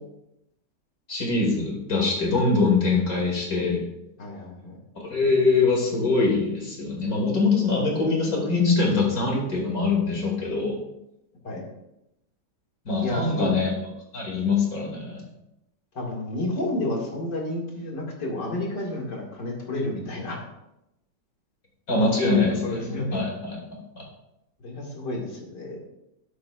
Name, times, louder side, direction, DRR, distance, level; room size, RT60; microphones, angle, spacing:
voice 1, 1.1-3.8 5.0-10.8 12.9-13.7 14.1-15.2 21.9-23.6 24.0-24.1, left 3 dB, 55° left, -2 dB, 3.0 m, -23 dB
voice 2, 4.2-4.8 11.4-11.6 13.0-13.5 15.9-20.4 22.0-23.4 24.6-25.8, left 2 dB, 75° left, -2 dB, 2.9 m, -31 dB
12.5 x 8.6 x 2.5 m, 0.86 s
omnidirectional pair, 1.9 m